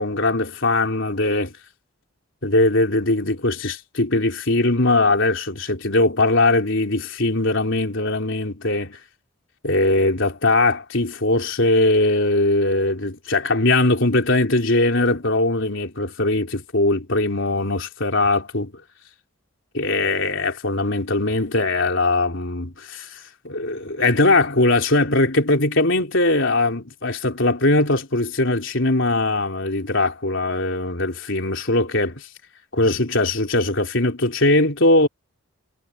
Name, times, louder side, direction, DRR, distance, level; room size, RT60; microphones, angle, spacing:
voice 1, 0.0-1.5 2.4-9.0 9.6-18.8 19.7-32.3 32.7-35.1, left 2 dB, 60° left, 4.0 m, -20 dB
head